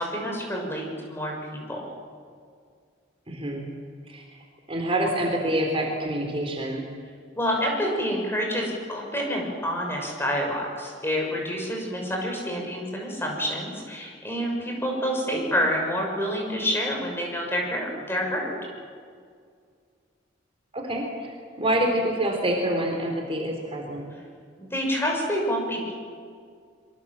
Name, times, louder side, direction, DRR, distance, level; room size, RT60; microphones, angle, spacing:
voice 1, 0.0-1.9 7.3-18.6 24.6-25.9, equal, 15° left, 0 dB, 6.4 m, -28 dB
voice 2, 3.3-3.7 4.1-4.2 4.7-6.8 20.7-24.0, right 1 dB, 30° right, 1 dB, 3.8 m, -26 dB
26.0 x 24.0 x 7.6 m, 2.1 s
head